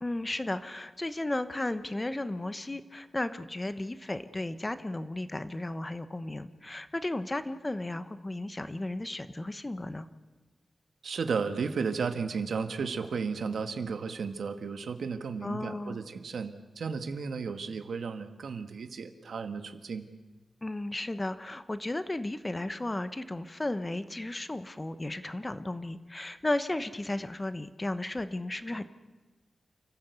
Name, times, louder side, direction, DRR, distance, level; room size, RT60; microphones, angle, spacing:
voice 1, 0.0-10.1 15.4-16.0 20.6-28.9, left 2 dB, 20° left, 12 dB, 0.9 m, -34 dB
voice 2, 11.0-20.0, right 5 dB, 80° right, 9 dB, 1.4 m, -34 dB
29.0 x 14.5 x 8.2 m, 1.3 s
wide cardioid pair, 150°, 0 cm